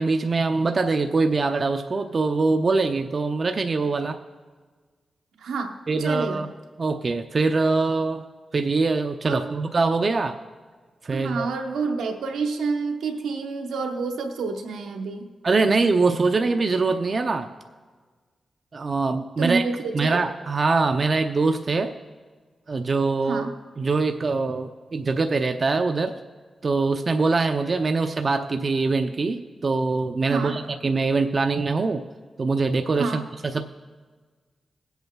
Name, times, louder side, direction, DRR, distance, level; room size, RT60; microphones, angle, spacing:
voice 1, 0.0-4.2 5.9-6.5 6.8-8.2 8.5-10.4 11.0-11.5 15.4-17.5 18.7-19.7 19.9-21.9 22.7-23.5 23.8-26.2 26.6-32.0 32.4-33.1 33.4-33.6, right 3 dB, 50° right, 6 dB, 0.6 m, -23 dB
voice 2, 5.4-6.4 9.2-9.6 11.1-15.3 19.4-20.2 23.3-23.5 30.3-30.6 33.0-33.3, right 4 dB, 90° right, 4 dB, 1.0 m, -28 dB
21.0 x 8.1 x 2.3 m, 1.4 s
cardioid pair, 45°, 0 cm